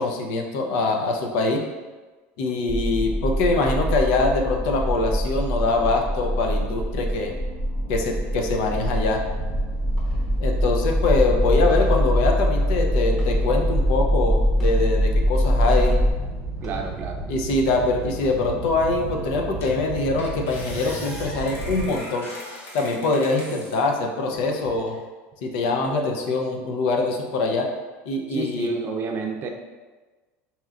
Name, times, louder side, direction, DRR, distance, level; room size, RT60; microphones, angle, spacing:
voice 1, 0.0-1.6 2.4-7.3 7.9-9.2 10.4-16.0 17.3-22.3 22.7-25.0 25.4-27.7 28.1-28.7, left 3 dB, 75° left, 3 dB, 0.6 m, -23 dB
sound 1, 2.7-16.1, equal, 25° left, 1.3 m, -23 dB
sound 2, 9.3-21.9, right 2 dB, 5° left, 1.0 m, -34 dB
voice 2, 16.6-17.2 28.3-29.5, right 4 dB, 40° right, 3 dB, 0.5 m, -29 dB
sound 3, 18.9-19.0 19.6-19.8 20.2-23.8 24.3-25.0, left 1 dB, 45° left, 1.2 m, -38 dB
5.4 x 2.8 x 2.4 m, 1.3 s
supercardioid pair, 125°, 6 cm